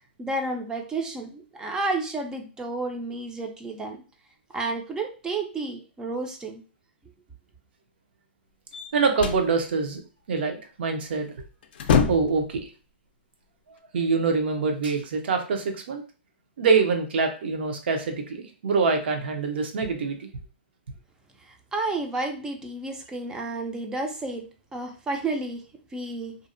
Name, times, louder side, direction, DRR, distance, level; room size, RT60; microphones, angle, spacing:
voice 1, 0.2-4.0 4.5-6.6 21.4-24.5 24.7-25.6 25.9-26.4, right 2 dB, 10° right, 3 dB, 0.4 m, -31 dB
sound 1, 8.7-9.5 11.1-11.3 11.6-12.5, left 6 dB, 65° left, 0.4 m, -24 dB
voice 2, 8.9-10.0 10.3-11.3 12.1-12.7 13.7-16.0 16.6-20.3, right 4 dB, 70° right, 4 dB, 0.7 m, -25 dB
2.6 x 2.0 x 2.5 m, 0.35 s
hypercardioid pair, 145°, 6 cm